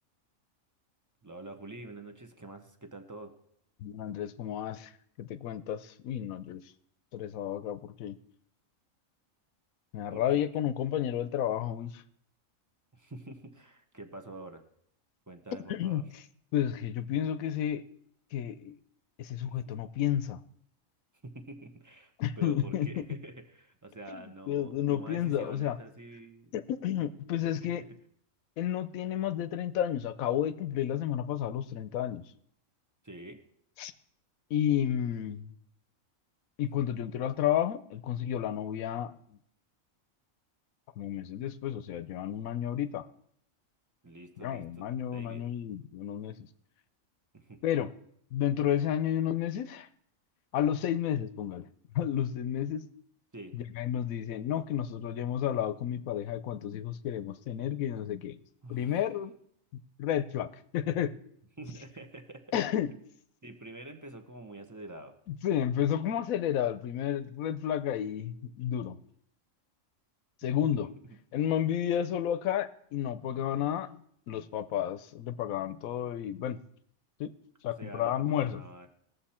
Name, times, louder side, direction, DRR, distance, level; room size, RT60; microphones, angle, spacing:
voice 1, 1.2-3.3 10.1-10.4 12.9-14.6 15.3-16.0 19.5-19.6 21.2-26.5 27.0-27.5 27.7-27.8 33.0-33.4 36.8-36.9 44.0-44.9 45.1-45.5 47.3-47.6 53.3-53.5 58.6-59.0 61.6-62.6 63.4-65.1 77.8-78.9, right 2 dB, 15° right, 6 dB, 0.8 m, -47 dB
voice 2, 3.8-4.9 5.2-6.6 7.1-8.2 9.9-12.0 15.7-16.0 16.5-17.9 18.3-18.8 19.2-20.4 22.2-23.0 24.1-25.8 26.5-27.8 28.6-32.2 33.8-33.9 34.5-35.5 36.6-39.1 41.0-43.0 44.4-46.4 47.6-47.9 48.3-49.9 50.5-51.6 51.9-52.9 53.5-58.4 58.7-59.4 59.7-60.5 60.7-61.1 62.5-62.9 65.3-69.0 70.4-70.9 71.3-76.6 77.2-77.3 77.6-78.6, left 10 dB, 85° left, 14 dB, 1.1 m, -31 dB
19.5 x 7.3 x 4.3 m, 0.69 s
omnidirectional pair, 1.4 m